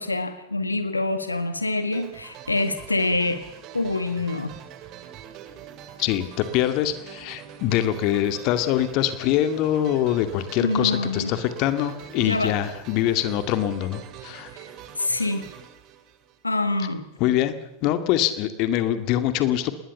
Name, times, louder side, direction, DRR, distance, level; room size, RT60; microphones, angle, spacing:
voice 1, 0.0-3.4 3.7-4.6 10.6-11.3 12.2-12.6 14.5-14.6 15.0-15.5 16.4-17.1, left 2 dB, 80° left, 10 dB, 1.9 m, -26 dB
sound 1, 1.9-16.8, right 10 dB, 40° right, 3.0 m, -44 dB
voice 2, 6.0-14.5 17.2-17.5 17.8-19.7, left 12 dB, 40° left, 10 dB, 2.2 m, -24 dB
28.0 x 20.0 x 7.1 m, 0.87 s
figure-of-eight pair, 90°, 0 cm